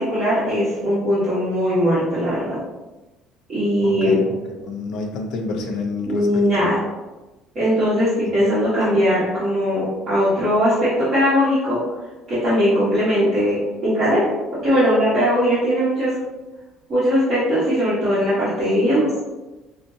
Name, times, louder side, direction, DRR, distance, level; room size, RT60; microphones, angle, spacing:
voice 1, 0.0-2.6 3.5-4.2 6.1-6.8 7.5-11.8 12.3-16.2 16.9-19.1, equal, 35° right, -12 dB, 1.2 m, -19 dB
voice 2, 3.8-6.7, left 3 dB, 60° left, 2 dB, 0.6 m, -29 dB
5.3 x 2.0 x 2.6 m, 1.1 s
cardioid pair, 160°, 0 cm